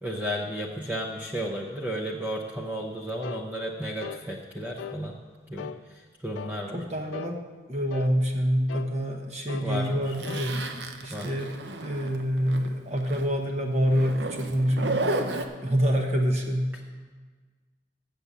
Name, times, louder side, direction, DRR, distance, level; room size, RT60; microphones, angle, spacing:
voice 1, 0.0-5.2 5.5-6.8 9.5-10.1 11.1-11.3, equal, 10° right, -1 dB, 0.7 m, -33 dB
sound 1, 3.2-3.5 4.0-4.3 4.8-5.0 5.6-5.8 6.4-6.6 7.1-7.4 7.9-8.1 8.7-8.9 9.5-9.7 10.3-10.5 11.0-11.1, left 8 dB, 90° left, 0.3 m, -38 dB
voice 2, 6.7-7.4 7.7-10.6 11.0-11.5 11.8-16.7, equal, 35° right, 3 dB, 1.1 m, -27 dB
Zipper (clothing), 10.1-12.7 13.0-13.3 13.9-15.4, right 2 dB, 70° right, 0.7 m, -32 dB
7.5 x 6.9 x 8.2 m, 1.5 s
head